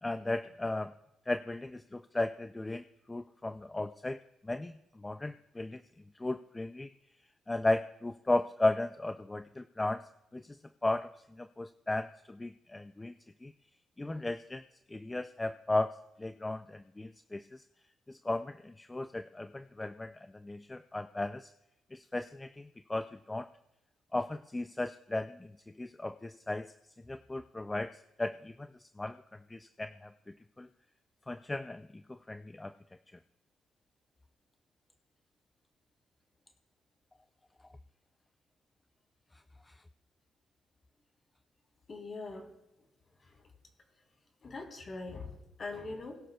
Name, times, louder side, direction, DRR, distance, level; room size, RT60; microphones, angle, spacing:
voice 1, 0.0-0.9 1.3-4.2 4.4-5.8 6.2-6.9 7.5-13.1 13.4-13.5 14.0-17.6 18.1-21.5 21.9-23.5 24.1-26.7 27.1-30.7 31.3-32.7 39.7-39.8, left 2 dB, 15° left, 9 dB, 0.4 m, -36 dB
voice 2, 41.9-42.5 44.4-46.2, left 3 dB, 40° left, 1 dB, 3.3 m, -42 dB
21.0 x 11.0 x 2.3 m, 0.89 s
cardioid pair, 90°, 0 cm